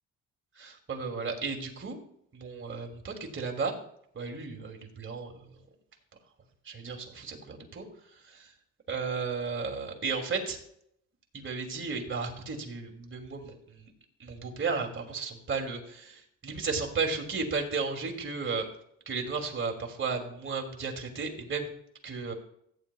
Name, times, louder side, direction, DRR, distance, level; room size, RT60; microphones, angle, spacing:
voice 1, 0.6-2.0 2.3-3.7 4.1-5.5 6.6-7.8 8.3-8.4 8.9-10.6 11.3-13.9 14.2-18.7 19.1-21.7 22.0-22.3, right 4 dB, 40° right, 2 dB, 2.6 m, -34 dB
15.5 x 9.5 x 2.3 m, 0.70 s
cardioid pair, 90°, 30 cm